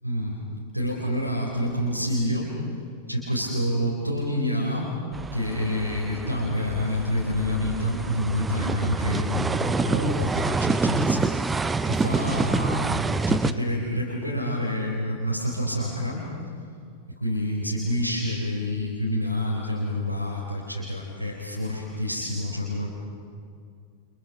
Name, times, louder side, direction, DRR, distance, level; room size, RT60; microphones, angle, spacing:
voice 1, 0.0-0.4 0.7-2.5 3.1-4.9 5.3-11.3 11.8-16.3 17.2-22.9, left 1 dB, 90° right, -3 dB, 4.2 m, -28 dB
sound 1, 5.1-13.5, right 3 dB, 10° right, 0.8 m, -27 dB
30.0 x 27.0 x 6.1 m, 2.3 s
figure-of-eight pair, 90°, 0 cm